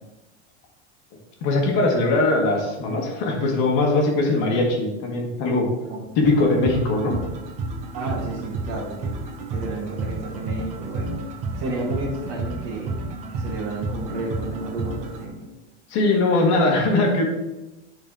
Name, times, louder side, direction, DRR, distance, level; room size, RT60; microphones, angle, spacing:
voice 1, 1.4-5.7 6.2-7.2 15.9-17.2, left 2 dB, 35° left, 1 dB, 1.4 m, -20 dB
sound 1, 6.2-15.2, right 3 dB, 20° right, 0.6 m, -31 dB
voice 2, 7.9-9.1 9.5-11.2 11.6-12.9 13.3-15.4, right 2 dB, 40° right, -2 dB, 2.0 m, -31 dB
9.8 x 4.1 x 3.8 m, 1.0 s
supercardioid pair, 180°, 35 cm